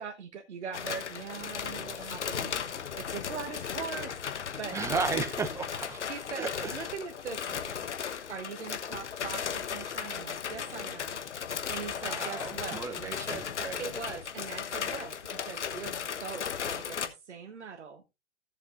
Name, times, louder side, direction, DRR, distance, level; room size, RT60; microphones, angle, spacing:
voice 1, 0.0-4.8 6.1-7.8 8.3-13.4 13.8-17.0 17.3-18.0, right 6 dB, 70° right, 1.3 m, -41 dB
sound 1, 0.7-17.1, left 7 dB, 70° left, 1.2 m, -36 dB
voice 2, 4.7-6.0 6.4-6.9 12.0-13.8, right 5 dB, 10° right, 0.7 m, -34 dB
16.5 x 7.3 x 2.5 m
figure-of-eight pair, 120°, 36 cm